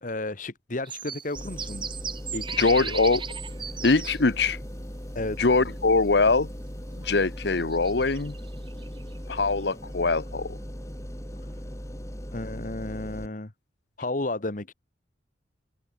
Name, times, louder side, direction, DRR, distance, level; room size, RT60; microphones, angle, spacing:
voice 1, 0.0-1.9 2.3-2.7 5.1-5.4 12.3-13.5 14.0-14.7, left 2 dB, 45° left, 1.4 m, -32 dB
sound 1, 0.8-4.2 5.1-5.2 7.0-7.1 7.6-9.2 9.6-9.7, right 7 dB, 25° right, 1.9 m, -37 dB
sound 2, 1.4-13.3, equal, 15° left, 5.4 m, -38 dB
voice 2, 2.6-3.2 3.8-4.6 5.4-6.5 7.0-8.4 9.3-10.6, left 3 dB, 60° left, 1.0 m, -22 dB
head